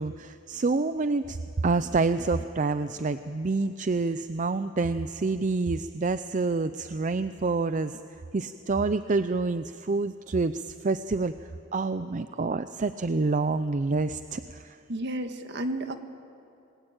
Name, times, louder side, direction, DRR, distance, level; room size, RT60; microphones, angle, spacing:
voice 1, 0.0-8.0 8.3-14.8, right 3 dB, 40° right, 12 dB, 0.5 m, -28 dB
voice 2, 14.9-16.0, right 1 dB, 60° right, 7 dB, 1.6 m, -32 dB
27.5 x 21.0 x 8.9 m, 2.7 s
head